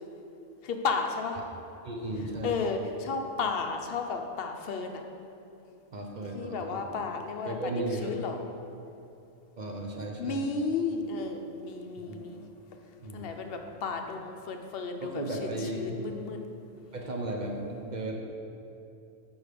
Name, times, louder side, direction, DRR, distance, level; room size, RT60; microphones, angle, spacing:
voice 1, 0.6-1.4 2.4-5.0 6.3-7.6 8.0-8.4 10.2-12.4 13.1-16.4, left 4 dB, 60° left, 4 dB, 0.7 m, -33 dB
voice 2, 1.8-2.6 5.9-6.8 7.5-8.2 9.6-10.4 12.1-12.2 13.0-13.3 15.0-16.0 16.9-18.1, right 1 dB, 50° right, 0 dB, 0.6 m, -35 dB
5.3 x 5.1 x 4.8 m, 2.7 s
omnidirectional pair, 1.3 m